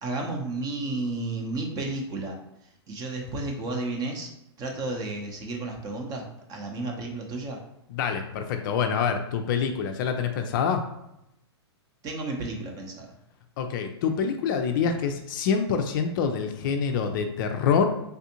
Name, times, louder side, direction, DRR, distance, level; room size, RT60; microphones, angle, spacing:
voice 1, 0.0-2.4 2.9-4.3 4.6-6.2 6.5-7.6 12.0-13.1, right 2 dB, 25° right, 2 dB, 0.6 m, -32 dB
voice 2, 7.9-10.9 13.6-17.9, left 6 dB, 45° left, 6 dB, 0.4 m, -26 dB
3.4 x 2.5 x 2.8 m, 0.83 s
hypercardioid pair, 125°, 15 cm